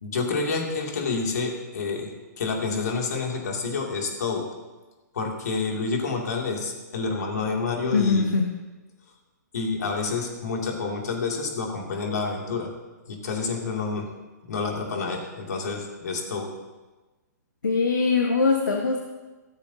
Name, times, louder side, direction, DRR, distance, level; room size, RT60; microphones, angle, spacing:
voice 1, 0.0-4.5 5.1-8.3 9.5-12.7 13.1-14.1 14.4-16.5, left 4 dB, 60° left, 1 dB, 2.5 m, -28 dB
voice 2, 7.9-8.6 17.6-19.0, left 4 dB, 75° left, 2 dB, 1.2 m, -22 dB
15.0 x 13.0 x 2.8 m, 1.2 s
figure-of-eight pair, 120°, 10 cm